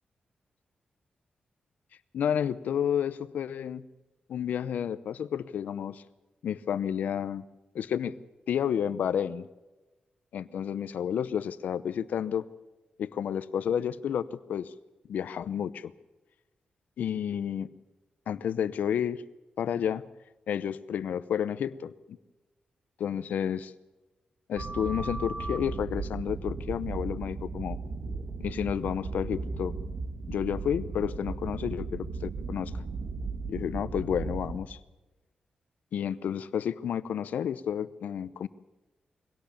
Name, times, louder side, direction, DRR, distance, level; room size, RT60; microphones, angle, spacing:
voice 1, 2.1-3.8 4.3-6.0 6.4-7.4 7.7-8.2 8.5-9.5 10.3-12.5 13.0-14.7 15.1-15.9 17.0-17.7 18.3-19.2 19.6-20.0 20.5-22.2 23.0-23.7 24.5-27.8 28.4-29.7 30.3-32.7 33.5-34.8 35.9-38.5, left 8 dB, 90° left, 16 dB, 0.8 m, -31 dB
sound 1, 24.6-34.6, right 4 dB, 65° right, 1.9 m, -36 dB
22.5 x 17.5 x 7.2 m, 1.1 s
cardioid pair, 95°, 3 cm